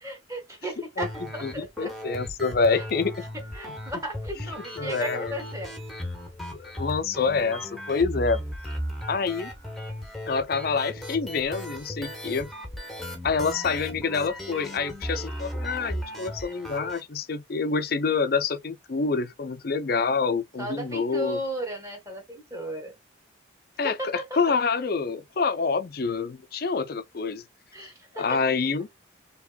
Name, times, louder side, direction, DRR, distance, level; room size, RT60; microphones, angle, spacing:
voice 1, 0.0-1.9 2.7-2.8 3.5-5.7 20.6-22.9 23.8-24.3 27.7-28.3, equal, 15° right, 1.7 m, -35 dB
sound 1, 1.0-17.0, equal, ahead, 1.1 m, -36 dB
voice 2, 1.4-3.1 3.7-3.8 4.4-4.5 4.8-5.4 6.5-8.4 9.1-9.5 10.3-12.5 13.2-21.4 23.8-27.4 28.1-28.9, left 4 dB, 50° left, 0.5 m, -27 dB
5.0 x 3.0 x 2.3 m
head